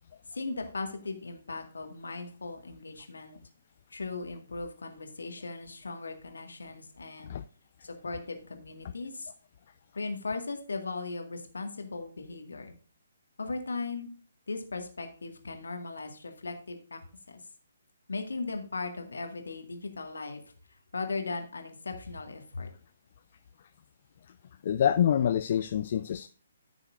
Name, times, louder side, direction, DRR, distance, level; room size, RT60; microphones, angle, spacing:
voice 1, 0.3-3.4 3.9-7.3 7.8-9.3 10.0-12.8 13.4-14.1 14.5-17.0 17.3-17.4 18.1-20.4 20.9-22.7, left 3 dB, 65° left, 5 dB, 1.9 m, -38 dB
voice 2, 24.6-26.3, left 9 dB, 40° left, 11 dB, 0.4 m, -26 dB
14.5 x 6.3 x 2.6 m, 0.41 s
figure-of-eight pair, 135°, 0 cm